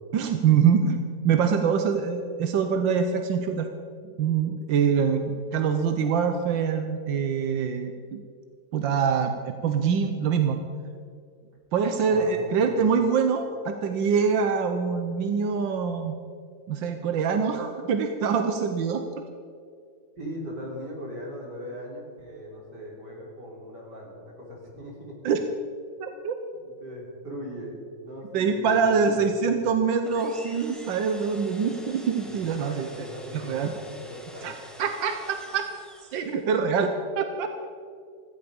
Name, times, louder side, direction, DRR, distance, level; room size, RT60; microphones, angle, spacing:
voice 1, 0.1-1.0 1.2-3.7 4.2-8.2 8.7-10.6 11.7-16.1 16.7-19.0 25.2-25.4 26.0-26.3 28.3-33.1 33.3-33.7 34.4-34.5 34.8-35.6 36.1-37.5, right 6 dB, 90° right, 6 dB, 1.7 m, -24 dB
voice 2, 12.1-12.5 20.2-25.2 26.6-29.4 32.2-34.5, equal, 65° right, -2 dB, 4.3 m, -39 dB
sound 1, 30.0-36.5, equal, ahead, 1.3 m, -48 dB
15.5 x 15.0 x 5.3 m, 2.2 s
omnidirectional pair, 2.0 m